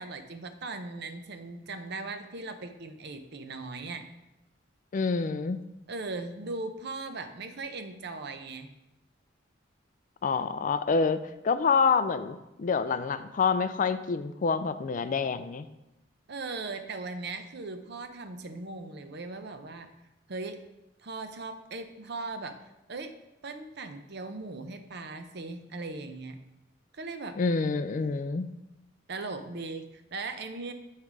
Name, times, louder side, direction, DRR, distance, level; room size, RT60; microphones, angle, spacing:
voice 1, 0.0-4.1 5.9-8.7 16.3-19.9 20.3-20.6 21.0-22.5 22.9-23.1 23.4-26.4 26.9-27.4 29.1-30.7, right 3 dB, 60° right, 8 dB, 0.7 m, -38 dB
voice 2, 4.9-5.6 10.2-15.7 27.4-28.5, left 5 dB, 45° left, 12 dB, 0.4 m, -27 dB
6.5 x 5.7 x 4.7 m, 0.91 s
head